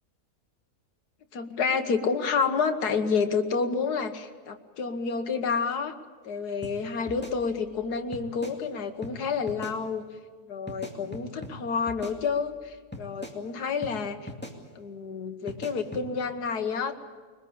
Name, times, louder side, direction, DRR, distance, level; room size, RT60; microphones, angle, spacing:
voice 1, 1.3-5.9 6.2-10.0 10.5-14.3 14.8-17.0, left 5 dB, 80° left, 7 dB, 1.9 m, -29 dB
sound 1, 6.6-6.8 7.1-7.8 8.1-8.6 9.0-9.2 9.5-9.8 10.7-11.6 11.9-12.6 12.9-13.4 13.8-14.0 14.3-14.6 15.5-16.1, left 1 dB, 5° left, 2.2 m, -40 dB
22.5 x 20.0 x 8.7 m, 1.5 s
omnidirectional pair, 1.7 m